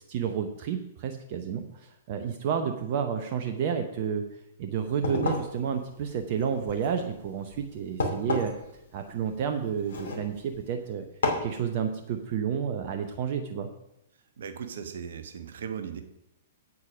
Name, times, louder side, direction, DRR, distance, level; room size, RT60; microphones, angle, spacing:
voice 1, 0.1-4.3 4.6-8.5 8.9-11.1 11.4-13.7, right 7 dB, 45° right, 6 dB, 0.9 m, -30 dB
sound 1, 4.8-10.7 11.2-11.6, left 3 dB, 65° left, 2.9 m, -33 dB
voice 2, 14.4-16.0, right 7 dB, 60° right, 8 dB, 1.1 m, -37 dB
8.6 x 8.4 x 5.1 m, 0.83 s
figure-of-eight pair, 110°, 0 cm